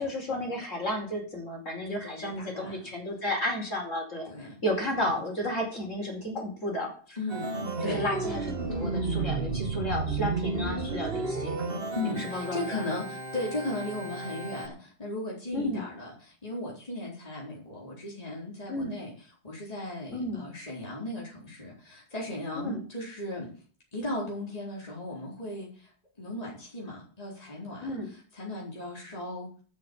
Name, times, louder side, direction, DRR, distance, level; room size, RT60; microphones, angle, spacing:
voice 1, 0.0-4.3 4.6-7.2 7.8-12.8 15.5-15.9 18.7-18.9 20.1-20.4 22.5-22.8 27.8-28.1, left 1 dB, 45° left, 1 dB, 5.1 m, -33 dB
voice 2, 1.9-2.9 4.3-4.6 5.0-5.1 7.2-8.0 11.9-19.1 19.4-23.5 23.9-25.9 26.2-27.9 28.3-29.5, left 2 dB, 20° left, -4 dB, 4.3 m, -36 dB
Organ, 7.3-14.7, right 4 dB, 35° right, 1.8 m, -32 dB
12.5 x 8.3 x 7.1 m, 0.42 s
omnidirectional pair, 1.8 m